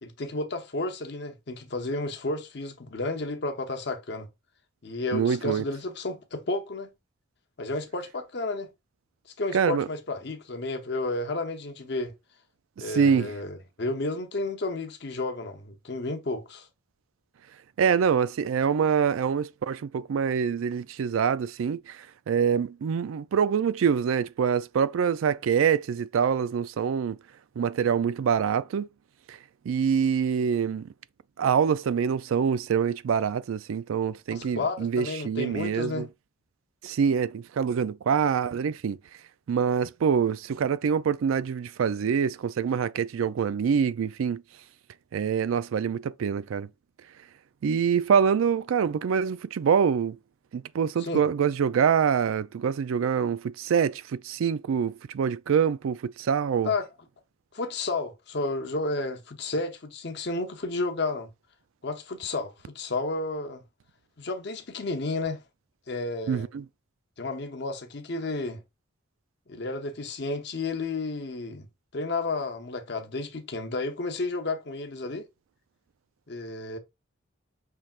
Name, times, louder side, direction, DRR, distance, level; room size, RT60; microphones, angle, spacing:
voice 1, 0.0-4.3 4.8-6.9 7.6-8.7 9.4-12.1 12.8-16.7 34.3-36.1 51.0-51.2 56.6-56.9 57.5-61.3 61.8-63.6 64.2-65.4 65.9-66.5 67.2-68.6 69.5-71.7 71.9-75.3 76.3-76.8, left 2 dB, 55° left, 0.7 m, -32 dB
voice 2, 5.1-5.6 9.5-9.9 12.8-13.3 17.8-27.2 27.6-28.9 29.3-29.4 29.7-30.9 31.4-36.1 36.8-39.0 39.5-44.4 45.1-46.7 47.6-50.2 50.5-56.7 66.3-66.6, right 7 dB, 85° right, 0.3 m, -25 dB
5.7 x 3.3 x 2.4 m
head